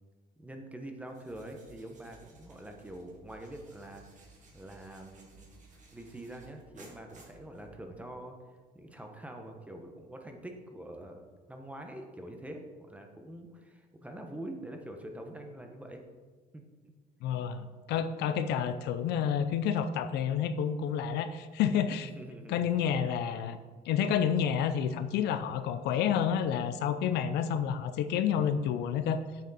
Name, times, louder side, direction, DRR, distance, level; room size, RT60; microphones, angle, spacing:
voice 1, 0.4-4.0 4.5-5.5 5.9-8.3 8.7-16.0 16.5-16.6 22.0-22.6, right 1 dB, 10° right, 4 dB, 1.1 m, -45 dB
sound 1, 1.0-8.0, right 3 dB, 45° right, 2.2 m, -57 dB
voice 2, 17.2-22.1 22.5-23.6 23.9-29.2, left 8 dB, 85° left, 11 dB, 0.5 m, -29 dB
8.4 x 6.4 x 4.2 m, 1.4 s
cardioid pair, 110°, 17 cm